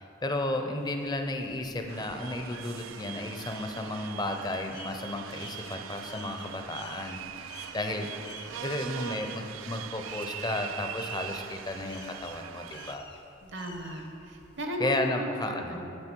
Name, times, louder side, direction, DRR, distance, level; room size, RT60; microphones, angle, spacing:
voice 1, 0.0-8.1 8.5-13.0 14.8-16.0, left 2 dB, 20° left, 4 dB, 0.6 m, -33 dB
sound 1, 0.8-14.7, left 5 dB, 60° left, 0.8 m, -52 dB
sound 2, 1.9-12.9, right 10 dB, 85° right, 0.3 m, -41 dB
voice 2, 13.4-16.0, right 1 dB, 60° right, 3 dB, 1.0 m, -36 dB
9.8 x 7.1 x 4.5 m, 2.9 s
head